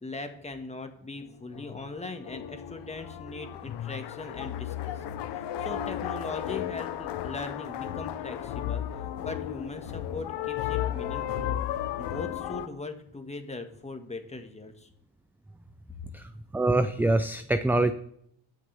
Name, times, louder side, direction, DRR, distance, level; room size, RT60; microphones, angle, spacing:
voice 1, 0.0-11.6 12.0-14.9, left 3 dB, 15° left, 6 dB, 1.6 m, -40 dB
sound 1, 1.3-12.7, left 11 dB, 65° left, 0.9 m, -34 dB
voice 2, 16.5-17.9, right 2 dB, 5° right, 11 dB, 0.4 m, -24 dB
18.5 x 6.6 x 3.5 m, 0.70 s
cardioid pair, 95°, 44 cm